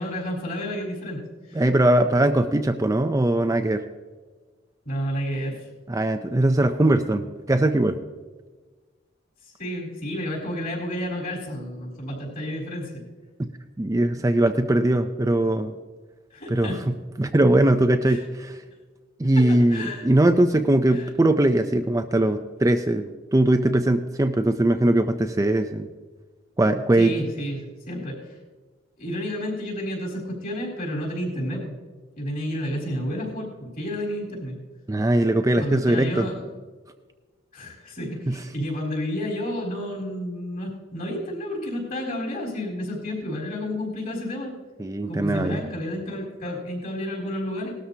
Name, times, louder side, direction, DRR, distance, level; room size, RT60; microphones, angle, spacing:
voice 1, 0.0-1.6 4.9-5.6 9.4-13.0 16.3-16.8 18.1-18.2 19.3-20.1 20.9-21.1 26.9-27.6 27.9-28.3 29.0-31.7 32.2-34.6 35.6-36.4 37.5-44.5 45.1-47.7, equal, 45° left, -1 dB, 4.0 m, -31 dB
voice 2, 1.5-3.8 5.9-8.0 13.8-15.7 16.5-16.7 17.2-18.6 19.2-25.9 26.6-27.1 34.9-36.3 38.3-38.4 44.8-45.6, right 1 dB, 15° right, 7 dB, 0.5 m, -21 dB
18.5 x 13.0 x 2.8 m, 1.4 s
head